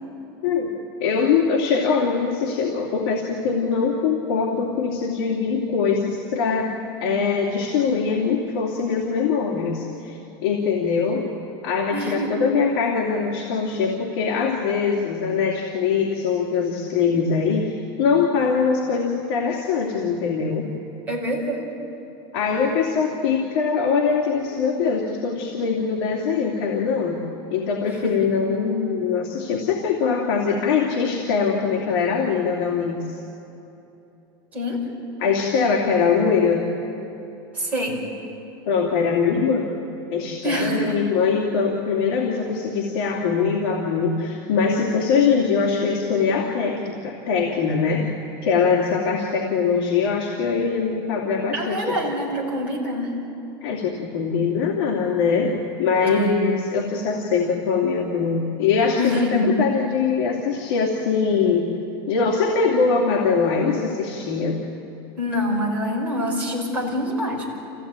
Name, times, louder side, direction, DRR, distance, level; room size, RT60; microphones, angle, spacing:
voice 1, 0.4-0.7 1.0-6.7 7.0-11.3 11.6-20.7 22.3-27.2 27.5-33.2 35.2-36.7 38.7-39.8 40.1-48.1 48.4-51.9 53.6-61.7 62.1-64.6, left 5 dB, 60° left, -2 dB, 2.7 m, -22 dB
voice 2, 11.9-12.3 21.1-21.7 28.0-28.3 34.5-34.8 37.5-38.0 40.4-41.0 51.5-53.1 56.0-56.3 59.0-59.6 65.2-67.6, equal, 10° right, -4 dB, 4.8 m, -25 dB
27.0 x 16.5 x 9.1 m, 3.0 s
supercardioid pair, 175°, 13 cm